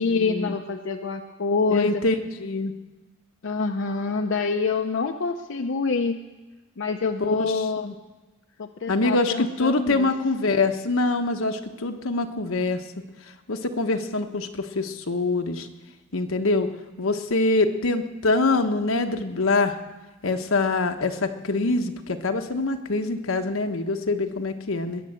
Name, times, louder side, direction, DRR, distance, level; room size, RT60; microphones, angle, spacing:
voice 1, 0.0-2.0 3.4-6.2 6.8-8.0 8.6-10.1, left 4 dB, 65° left, 5 dB, 0.6 m, -26 dB
voice 2, 1.7-2.7 7.4-7.5 7.8-7.9 8.9-12.8 13.5-15.7 16.1-16.7 17.0-19.8 20.2-25.0, left 3 dB, 85° left, 6 dB, 1.1 m, -24 dB
21.0 x 7.7 x 7.6 m, 1.2 s
head